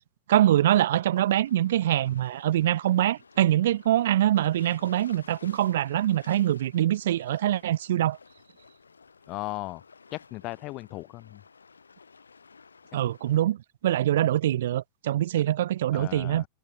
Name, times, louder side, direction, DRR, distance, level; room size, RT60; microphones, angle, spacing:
voice 1, 0.3-8.2 12.9-13.6 13.8-16.5, right 12 dB, 60° right, 0.5 m, -24 dB
sound 1, 1.1-13.4, left 5 dB, 75° left, 4.8 m, -53 dB
voice 2, 9.3-9.8 10.1-11.4 15.9-16.5, left 20 dB, 40° left, 1.3 m, -36 dB
figure-of-eight pair, 90°, 0 cm